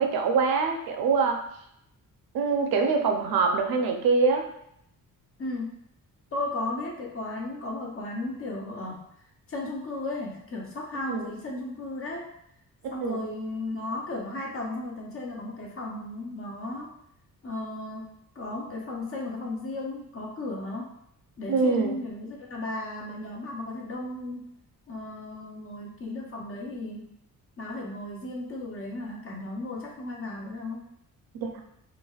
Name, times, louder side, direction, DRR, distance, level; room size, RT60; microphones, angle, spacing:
voice 1, 0.0-1.4 2.3-4.5 11.1-11.3 13.0-13.2 21.5-22.0 31.4-31.6, right 4 dB, 80° right, 4 dB, 0.5 m, -24 dB
voice 2, 5.4-5.7 6.3-9.0 9.5-12.2 12.9-16.9 17.4-18.0 18.4-20.9 21.4-24.5 24.9-27.0 27.6-30.8, left 2 dB, 40° left, -1 dB, 0.6 m, -35 dB
3.2 x 2.3 x 2.3 m, 0.75 s
wide cardioid pair, 165°, 35 cm